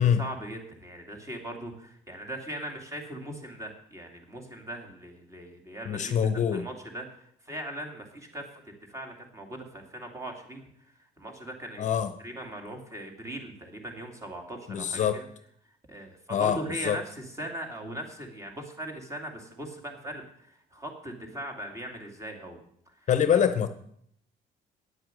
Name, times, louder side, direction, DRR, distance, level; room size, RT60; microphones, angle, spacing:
voice 1, 0.0-6.1 6.5-8.6 8.9-10.7 11.2-11.9 12.2-15.3 15.9-22.6 23.3-23.4, right 1 dB, 15° right, 2 dB, 2.6 m, -39 dB
voice 2, 5.9-6.6 11.8-12.1 14.7-15.2 16.3-16.6 16.8-17.0 23.1-23.7, left 8 dB, 45° left, 10 dB, 0.8 m, -24 dB
9.7 x 7.9 x 7.6 m, 0.69 s
cardioid pair, 110°, 17 cm